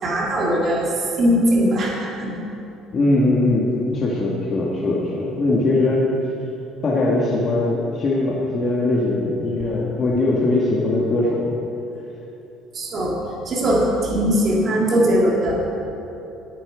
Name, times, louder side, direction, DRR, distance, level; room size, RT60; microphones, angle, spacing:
voice 1, 0.0-0.9 1.2-2.3 12.7-13.2 13.5-15.6, equal, 30° right, -3 dB, 2.3 m, -20 dB
voice 2, 2.9-3.7 3.9-6.0 6.8-11.5, left 2 dB, 30° left, -5 dB, 1.4 m, -20 dB
18.5 x 8.5 x 4.7 m, 2.9 s
cardioid pair, 175°, 0 cm